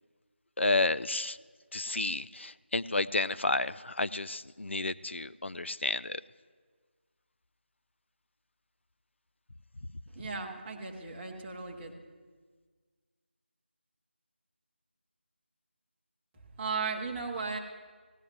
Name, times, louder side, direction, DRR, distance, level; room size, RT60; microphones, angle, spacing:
voice 1, 0.6-1.4 1.7-6.2, left 2 dB, 90° left, 15 dB, 0.5 m, -31 dB
voice 2, 10.1-11.9 16.6-17.6, right 4 dB, 10° right, -3 dB, 0.9 m, -36 dB
16.5 x 5.6 x 9.3 m, 1.5 s
figure-of-eight pair, 170°, 6 cm